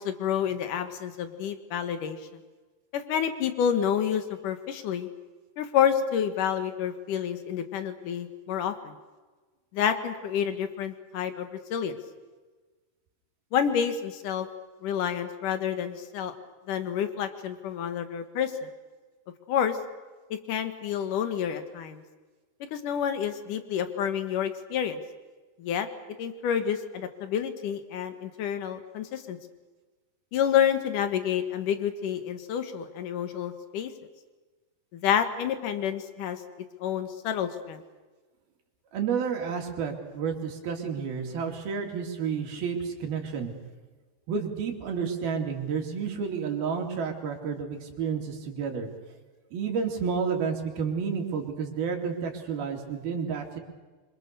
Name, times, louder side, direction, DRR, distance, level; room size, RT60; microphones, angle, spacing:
voice 1, 0.0-2.2 2.9-5.1 5.6-9.0 9.7-12.0 13.5-14.5 14.8-16.3 16.7-18.7 19.5-19.8 20.5-22.0 22.7-25.0 25.6-25.9 26.2-29.4 30.3-33.9 34.9-36.4 36.8-37.8, left 8 dB, 60° left, 9 dB, 2.6 m, -29 dB
voice 2, 38.9-43.5 44.3-48.9 49.5-53.6, right 6 dB, 60° right, 1 dB, 4.5 m, -30 dB
26.0 x 24.0 x 6.8 m, 1.3 s
omnidirectional pair, 5.0 m